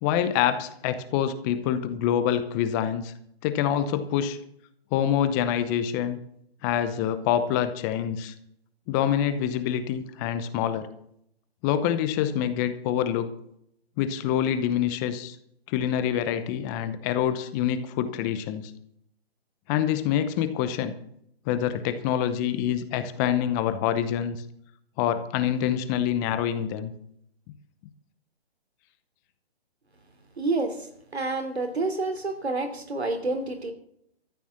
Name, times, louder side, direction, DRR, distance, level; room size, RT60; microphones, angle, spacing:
voice 1, 0.0-3.1 3.4-4.4 4.9-6.2 6.6-8.3 8.9-10.9 11.6-13.3 14.0-15.4 15.7-18.7 19.7-20.9 21.5-24.4 25.0-26.9, left 10 dB, 20° left, 11 dB, 0.8 m, -26 dB
voice 2, 30.4-30.9 31.1-33.7, right 3 dB, 90° right, 7 dB, 3.1 m, -28 dB
14.0 x 8.9 x 7.2 m, 0.70 s
hypercardioid pair, 145°, 31 cm